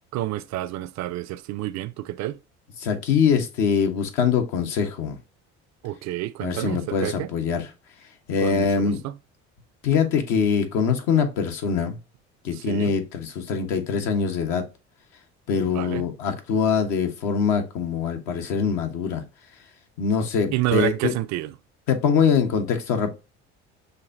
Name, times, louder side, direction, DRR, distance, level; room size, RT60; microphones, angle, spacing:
voice 1, 0.1-2.4 5.8-7.3 8.4-9.1 12.5-12.9 15.6-16.0 20.5-21.5, right 15 dB, 55° right, 0.5 m, -29 dB
voice 2, 2.8-5.2 6.4-7.7 8.3-9.0 9.8-12.0 12.4-14.6 15.5-19.2 20.0-21.1 21.9-23.1, left 6 dB, 70° left, 1.1 m, -23 dB
6.5 x 2.7 x 2.6 m
hypercardioid pair, 70°, 33 cm